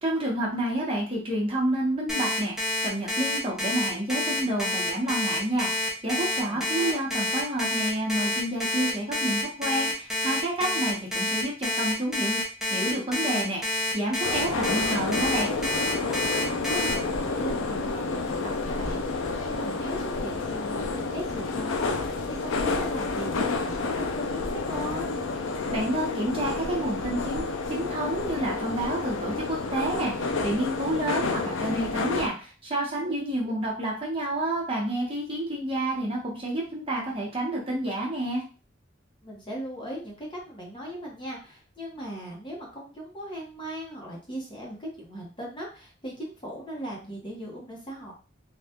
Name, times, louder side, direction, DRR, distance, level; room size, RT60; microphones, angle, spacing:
voice 1, 0.0-12.4 12.7-15.5 25.7-38.4, right 1 dB, 30° right, -3 dB, 0.9 m, -29 dB
Alarm, 2.1-16.9, left 2 dB, 5° right, 0.7 m, -28 dB
voice 2, 6.5-7.0 16.4-25.1 33.0-33.1 33.4-33.5 39.2-48.1, right 1 dB, 25° left, -3 dB, 0.9 m, -38 dB
sound 1, 14.2-32.3, left 3 dB, 90° left, 0.5 m, -30 dB
3.4 x 2.3 x 2.8 m, 0.35 s
head